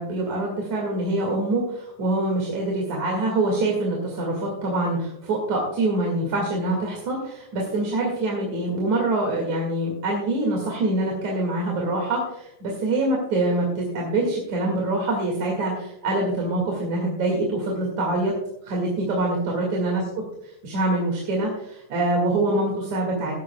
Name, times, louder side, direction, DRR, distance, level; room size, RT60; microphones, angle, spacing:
voice 1, 0.0-18.3 18.6-20.0 20.6-23.3, right 2 dB, 65° right, -1 dB, 3.5 m, -25 dB
16.5 x 12.0 x 2.3 m, 0.81 s
omnidirectional pair, 3.5 m